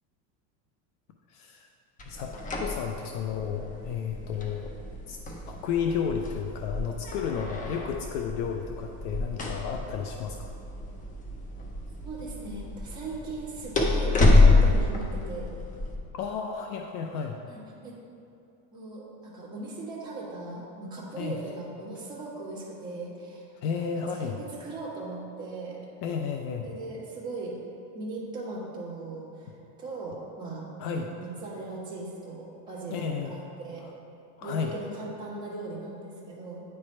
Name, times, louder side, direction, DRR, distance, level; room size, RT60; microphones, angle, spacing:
voice 1, 1.3-1.7 2.1-4.7 5.1-5.2 5.5-10.5 16.1-17.4 21.2-21.4 23.6-24.4 26.0-26.7 30.8-31.1 32.9-33.3 33.8-33.9 34.4-34.7, left 7 dB, 65° left, 3 dB, 0.6 m, -32 dB
sound 1, 2.0-15.9, left 2 dB, 15° left, 0.5 m, -27 dB
voice 2, 12.0-15.5 17.5-18.0 18.7-23.5 24.1-25.8 26.6-27.6 27.9-29.5 29.8-33.8 34.4-36.6, right 2 dB, 10° right, -8 dB, 1.4 m, -39 dB
9.6 x 3.3 x 4.3 m, 2.7 s
supercardioid pair, 135°, 48 cm